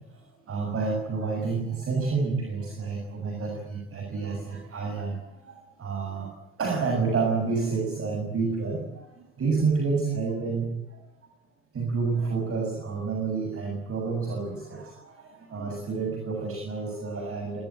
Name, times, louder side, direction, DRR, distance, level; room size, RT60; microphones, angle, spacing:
voice 1, 0.1-6.3 6.6-11.3 11.7-17.6, right 4 dB, 45° right, 2 dB, 7.9 m, -29 dB
26.5 x 20.0 x 9.1 m, 0.86 s
figure-of-eight pair, 50°, 32 cm